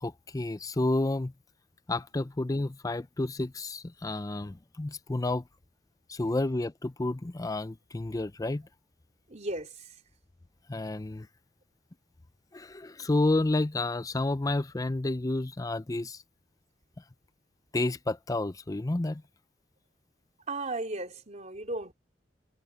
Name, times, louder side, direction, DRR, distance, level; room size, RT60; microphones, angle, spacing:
voice 1, 0.0-1.3 1.9-5.5 6.1-8.7 10.7-11.3 12.5-16.2 17.7-19.2, left 2 dB, 20° left, 0.5 m, -30 dB
voice 2, 9.3-9.7 20.5-21.9, right 2 dB, 40° right, 3.8 m, -35 dB
head